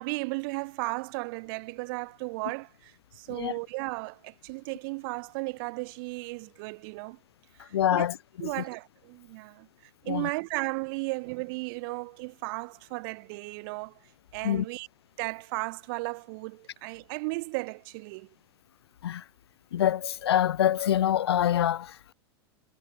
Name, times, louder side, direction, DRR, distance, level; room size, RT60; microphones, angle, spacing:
voice 1, 0.0-7.2 7.6-8.1 8.4-9.7 10.0-13.9 14.3-14.9 15.2-18.3, right 28 dB, 55° right, 4.7 m, -35 dB
voice 2, 7.7-8.2 8.4-8.5 10.1-10.3 14.4-14.6 19.0-19.2 19.7-22.1, left 11 dB, 75° left, 1.0 m, -25 dB
hypercardioid pair, 95°, 13 cm